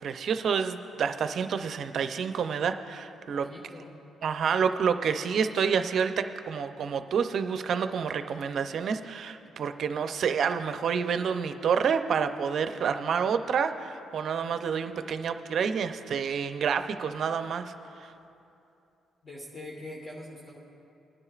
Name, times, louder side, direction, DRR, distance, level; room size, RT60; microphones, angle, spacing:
voice 1, 0.0-3.5 4.2-17.7 18.0-18.1, right 6 dB, 60° right, 9 dB, 0.5 m, -28 dB
voice 2, 3.3-4.0 19.2-20.6, left 1 dB, 30° left, -2 dB, 1.4 m, -43 dB
21.0 x 9.7 x 2.4 m, 2.7 s
cardioid pair, 90°, 0 cm